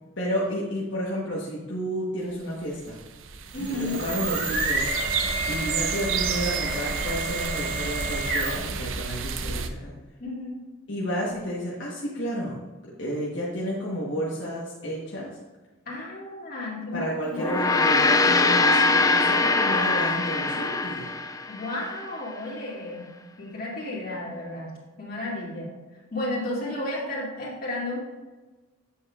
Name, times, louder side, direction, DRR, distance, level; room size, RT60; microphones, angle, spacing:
voice 1, 0.2-3.0 3.7-4.9 5.5-9.9 10.9-12.6 13.0-15.3 16.9-21.1, equal, 65° left, -5 dB, 1.3 m, -31 dB
sound 1, 2.6-9.7, right 6 dB, 75° right, 0.6 m, -31 dB
voice 2, 3.5-4.0 9.5-9.6 10.2-10.6 15.9-17.6 21.5-23.1 23.4-24.7 25.0-25.7 26.1-28.0, left 2 dB, 45° left, -5 dB, 2.6 m, -33 dB
sound 2, 3.5-8.8, right 2 dB, 60° right, 2.1 m, -30 dB
Gong, 17.3-22.0, left 3 dB, 15° left, 0.3 m, -22 dB
8.7 x 7.4 x 2.4 m, 1.2 s
head